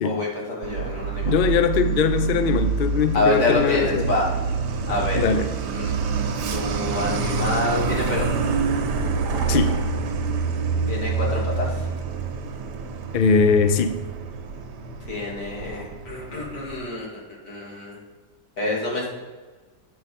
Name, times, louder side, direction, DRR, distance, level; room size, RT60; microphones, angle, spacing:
voice 1, 0.0-1.3 3.1-4.3 4.9-5.2 5.7-8.3 10.9-11.8 15.1-17.1 17.4-18.0 18.6-19.1, left 2 dB, 65° left, 3.0 m, -27 dB
Truck, 0.6-16.9, right 5 dB, 85° right, 1.4 m, -27 dB
voice 2, 1.2-4.2 5.1-5.5 9.5-9.8 13.1-14.0, left 5 dB, 90° left, 0.4 m, -21 dB
8.7 x 6.7 x 4.2 m
omnidirectional pair, 1.8 m